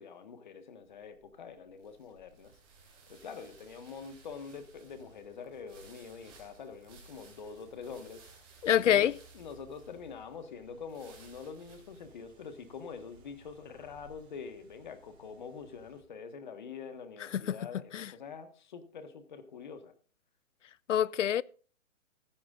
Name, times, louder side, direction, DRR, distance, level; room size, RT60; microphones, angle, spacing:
voice 1, 0.0-2.6 3.1-8.2 8.7-19.9, left 5 dB, 35° left, 1.4 m, -45 dB
sound 1, 0.8-14.1, right 3 dB, 10° right, 2.9 m, -60 dB
sound 2, 2.4-16.0, right 4 dB, 50° right, 3.7 m, -62 dB
voice 2, 8.6-9.1 17.9-18.1 20.9-21.4, left 10 dB, 60° left, 0.6 m, -25 dB
14.5 x 13.5 x 2.4 m
hypercardioid pair, 170°, 41 cm